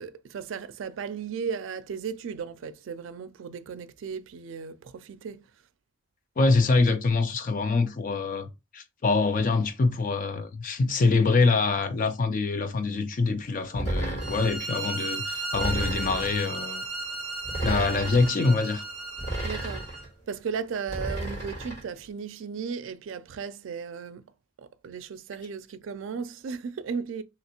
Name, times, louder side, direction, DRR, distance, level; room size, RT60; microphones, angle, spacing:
voice 1, 0.0-5.5 19.4-19.9 20.3-24.3 24.6-27.2, right 6 dB, 75° right, 0.4 m, -35 dB
voice 2, 6.4-8.5 8.7-16.8 17.6-18.8, left 3 dB, 40° left, 0.4 m, -25 dB
sound 1, 13.8-14.6 15.5-16.4 17.4-18.3 19.2-20.1 20.9-21.8, right 1 dB, 65° left, 2.0 m, -32 dB
sound 2, 14.2-20.0, right 3 dB, 5° right, 1.4 m, -35 dB
3.2 x 2.9 x 2.8 m
head